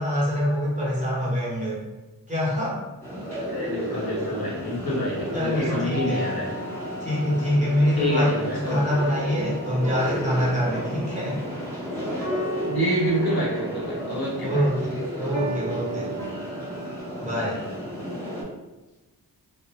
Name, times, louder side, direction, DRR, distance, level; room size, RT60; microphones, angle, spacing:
voice 1, 0.0-1.8 2.3-2.8 5.3-6.3 7.0-11.4 14.4-16.1 17.2-17.6, equal, 15° right, -6 dB, 1.1 m, -25 dB
sound 1, 3.0-18.4, equal, 5° left, 1.1 m, -33 dB
voice 2, 3.5-6.5 8.0-8.8 12.7-14.6, equal, 65° left, -5 dB, 0.9 m, -27 dB
sound 2, 5.9-17.0, right 1 dB, 45° right, 1.0 m, -36 dB
2.7 x 2.1 x 2.8 m, 1.1 s
wide cardioid pair, 65°, 41 cm